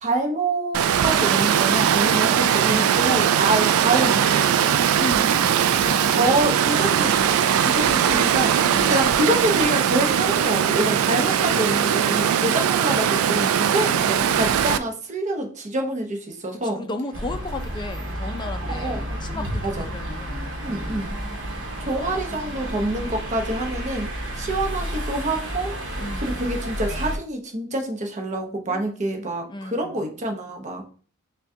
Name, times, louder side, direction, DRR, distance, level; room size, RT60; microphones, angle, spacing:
voice 1, 0.0-4.8 6.1-8.6 8.9-16.8 18.6-19.9 20.6-21.1 21.8-24.1 24.3-25.7 26.2-30.8, right 1 dB, 35° right, 0.8 m, -26 dB
Water, 0.7-14.8, right 9 dB, 80° right, 0.3 m, -20 dB
voice 2, 5.0-5.5 5.8-6.4 8.5-9.2 11.3-11.6 13.9-14.5 16.5-21.1 22.0-22.2 26.0-26.6 28.7-28.9 29.5-30.1, left 2 dB, 20° left, 0.4 m, -35 dB
sound 1, 17.1-27.2, right 1 dB, 60° right, 1.0 m, -31 dB
5.9 x 2.3 x 2.7 m
head